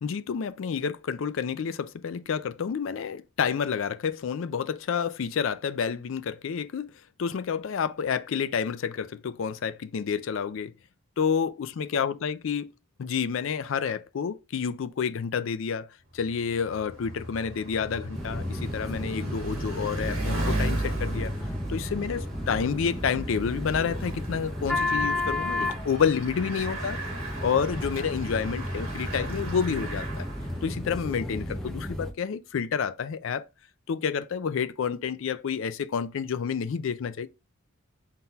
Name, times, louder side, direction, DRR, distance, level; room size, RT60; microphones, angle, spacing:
voice 1, 0.0-6.9 7.2-10.7 11.2-12.7 13.0-15.9 16.1-21.3 21.7-27.0 27.4-30.3 30.6-33.5 33.9-37.3, left 6 dB, 65° left, 0.4 m, -29 dB
Bicycle, 16.1-30.8, right 1 dB, 75° right, 1.4 m, -36 dB
sound 1, 18.1-32.1, left 1 dB, ahead, 0.5 m, -33 dB
4.1 x 3.8 x 2.3 m
head